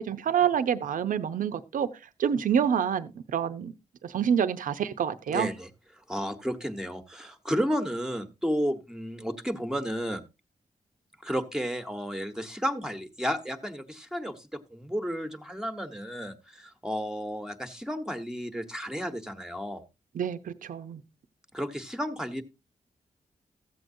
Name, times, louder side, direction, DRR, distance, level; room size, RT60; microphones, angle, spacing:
voice 1, 0.1-1.9 2.2-3.7 4.0-5.5 20.1-21.0, right 8 dB, 80° right, 0.7 m, -27 dB
voice 2, 5.3-5.7 6.1-10.2 11.2-19.8 21.5-22.4, equal, 5° right, 1.0 m, -32 dB
14.5 x 7.8 x 2.6 m
wide cardioid pair, 105°, 14 cm